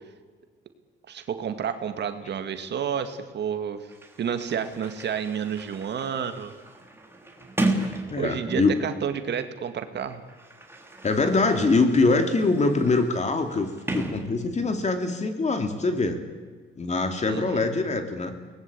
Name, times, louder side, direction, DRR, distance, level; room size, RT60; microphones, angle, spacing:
voice 1, 1.1-3.9 4.2-6.5 8.2-10.2 17.3-17.7, right 7 dB, 60° right, 9 dB, 2.0 m, -30 dB
Sliding door, 3.9-8.9 9.9-14.8, right 2 dB, 10° right, 3.6 m, -35 dB
voice 2, 8.1-8.7 11.0-16.2 16.8-18.3, left 3 dB, 35° left, 6 dB, 3.1 m, -23 dB
23.0 x 19.5 x 8.5 m, 1.5 s
cardioid pair, 90°, 20 cm